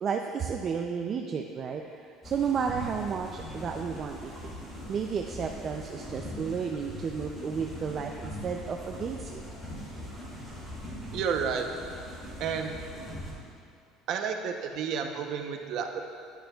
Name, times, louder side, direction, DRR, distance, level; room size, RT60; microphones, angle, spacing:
voice 1, 0.0-4.5 4.9-9.4, right 6 dB, 25° right, 3 dB, 0.4 m, -32 dB
sound 1, 2.2-13.3, left 1 dB, 5° left, 2.3 m, -41 dB
voice 2, 11.1-11.7 12.4-12.8 14.1-16.0, right 7 dB, 45° right, 4 dB, 0.7 m, -31 dB
13.0 x 10.5 x 2.3 m, 2.4 s
cardioid pair, 175°, 0 cm